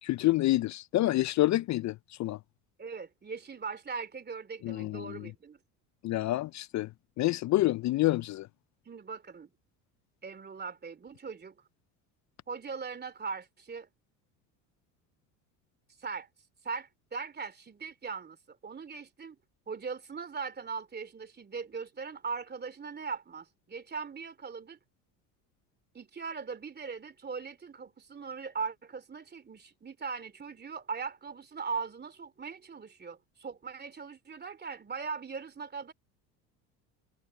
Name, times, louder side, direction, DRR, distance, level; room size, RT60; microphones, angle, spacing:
voice 1, 0.0-1.9 2.2-2.4 4.6-5.3 6.0-6.9 7.2-8.5, left 16 dB, 45° left, 0.5 m, -27 dB
voice 2, 2.8-5.6 8.9-9.5 10.2-11.6 12.5-13.9 16.0-16.3 16.6-19.4 19.7-24.8 25.9-35.9, right 5 dB, 25° right, 2.8 m, -40 dB
supercardioid pair, 85°, 41 cm